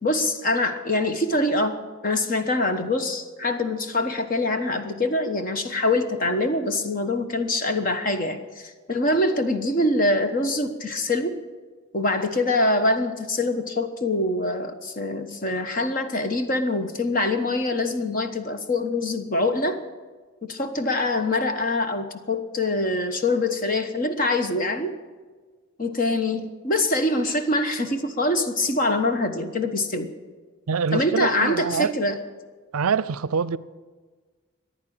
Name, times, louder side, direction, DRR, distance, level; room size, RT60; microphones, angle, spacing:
voice 1, 0.0-1.8 2.0-11.3 11.9-19.8 20.4-24.9 25.8-30.1 30.9-32.2, left 2 dB, 40° left, 1.1 m, -24 dB
voice 2, 30.7-31.9 32.7-33.6, right 6 dB, 80° right, 0.5 m, -25 dB
15.0 x 10.5 x 8.7 m
head